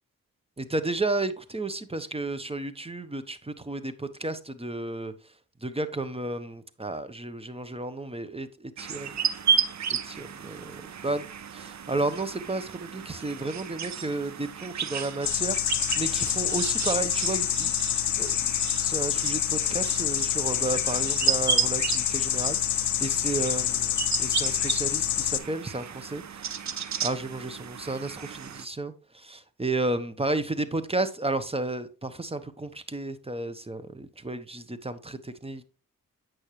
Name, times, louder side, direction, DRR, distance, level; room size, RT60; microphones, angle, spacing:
voice 1, 0.6-5.1 5.6-8.5 8.9-9.1 10.1-11.3 11.5-17.7 18.2-18.5 18.8-26.4 27.0-35.6, right 2 dB, 15° right, 1.0 m, -32 dB
sound 1, 8.8-28.7, right 8 dB, 55° right, 0.7 m, -33 dB
sound 2, 15.2-25.4, left 12 dB, 80° left, 0.6 m, -27 dB
8.3 x 6.2 x 3.2 m
supercardioid pair, 40°, 34 cm